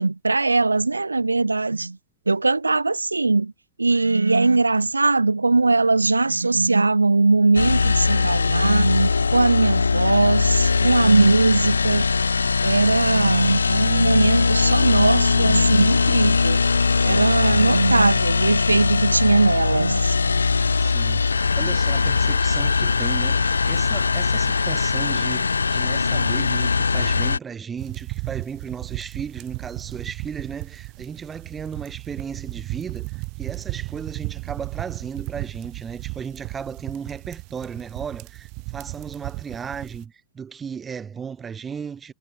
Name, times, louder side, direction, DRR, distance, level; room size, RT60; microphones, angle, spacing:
voice 1, 0.0-1.9 2.3-3.5 3.8-12.1 12.6-16.6 17.0-20.2, right 3 dB, 90° right, 0.5 m, -20 dB
Ventilation Furnace - Exterior Academic Heating Unit, 7.6-27.4, left 4 dB, 85° left, 0.6 m, -20 dB
voice 2, 20.7-42.1, right 6 dB, 20° right, 2.6 m, -35 dB
sound 1, 27.8-40.0, right 29 dB, 45° right, 7.9 m, -35 dB
figure-of-eight pair, 95°, 0 cm